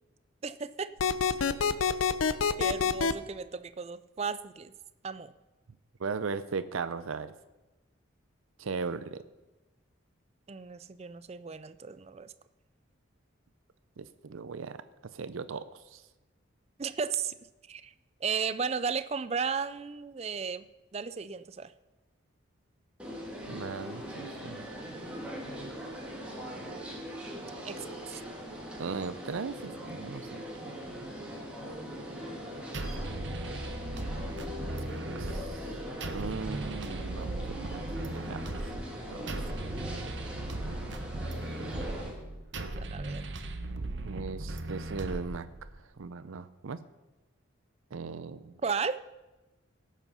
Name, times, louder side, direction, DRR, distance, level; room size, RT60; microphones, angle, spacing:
voice 1, 0.4-0.9 2.6-4.7 5.0-5.3 10.5-12.3 16.8-17.3 17.7-17.9 18.2-20.7 20.9-21.7 27.6-28.2 42.8-43.3 48.6-49.0, right 5 dB, 30° right, 13 dB, 0.4 m, -34 dB
sound 1, 1.0-3.1, left 6 dB, 85° left, 0.6 m, -26 dB
voice 2, 6.0-7.3 8.6-9.2 14.0-14.8 15.1-15.6 15.9-16.0 23.5-24.7 28.8-30.5 35.2-35.7 36.1-38.7 39.1-39.4 44.0-45.5 46.0-46.8 47.9-48.6, right 5 dB, 80° right, 13 dB, 0.5 m, -38 dB
sound 2, 23.0-42.1, equal, 5° right, 2.3 m, -41 dB
sound 3, 32.7-45.8, right 2 dB, 60° right, 1.0 m, -38 dB
18.0 x 7.4 x 5.6 m, 1.1 s
head